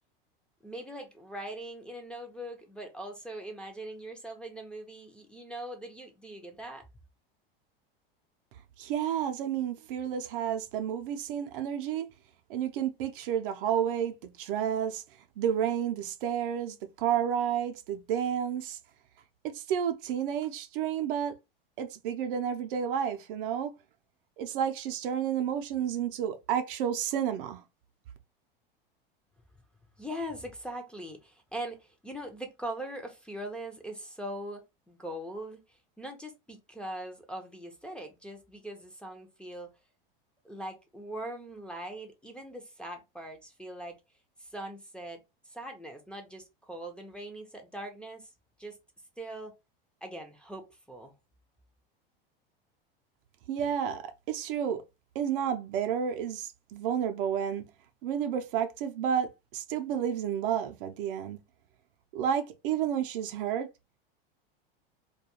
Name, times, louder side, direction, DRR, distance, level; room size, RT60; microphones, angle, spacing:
voice 1, 0.6-6.9 30.0-39.7 40.4-44.0 44.4-45.2 45.4-48.3 48.6-48.8 49.2-49.5 50.0-51.1, right 1 dB, 5° left, 0.5 m, -41 dB
voice 2, 8.8-12.1 12.5-15.0 15.4-18.8 19.4-21.3 21.8-23.7 24.4-27.6 53.5-54.8 55.1-57.6 58.0-61.4 62.1-63.7, right 9 dB, 65° right, 0.5 m, -31 dB
2.3 x 2.3 x 2.8 m
hypercardioid pair, 100°, 29 cm